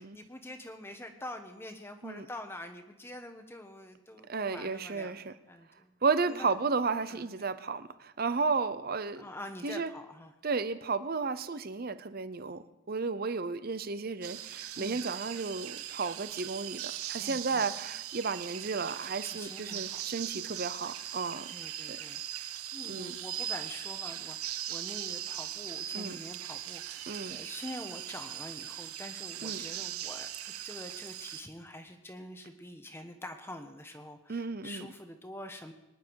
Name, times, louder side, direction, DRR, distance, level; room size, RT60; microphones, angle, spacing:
voice 1, 0.0-5.9 6.2-6.6 7.1-7.3 9.2-10.3 14.7-15.0 17.2-17.6 19.2-20.0 21.5-22.2 22.5-35.7, left 1 dB, 10° left, 6 dB, 1.1 m, -46 dB
voice 2, 4.3-5.3 6.0-9.2 9.6-9.9 10.4-21.5 21.9-22.0 22.9-23.2 25.9-26.2 27.1-27.4 29.4-29.6 34.3-34.9, right 4 dB, 45° right, 13 dB, 0.6 m, -33 dB
sound 1, 14.2-31.4, right 11 dB, 85° right, 0.7 m, -40 dB
24.0 x 10.5 x 4.7 m, 0.99 s
head